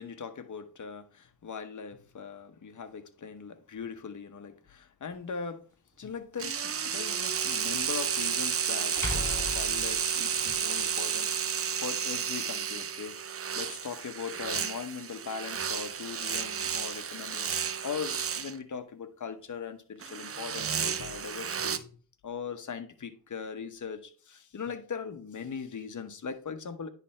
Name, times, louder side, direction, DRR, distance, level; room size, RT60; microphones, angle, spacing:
voice 1, 0.0-5.6 6.0-13.2 13.5-22.0 22.2-26.9, left 6 dB, 50° left, 1.1 m, -40 dB
sound 1, 5.1-5.2 7.8-7.9 9.0-10.6, left 1 dB, 10° left, 3.8 m, -36 dB
sound 2, 6.4-18.5 20.0-21.8, right 7 dB, 35° right, 0.6 m, -32 dB
10.0 x 3.4 x 4.4 m
supercardioid pair, 50°, 38 cm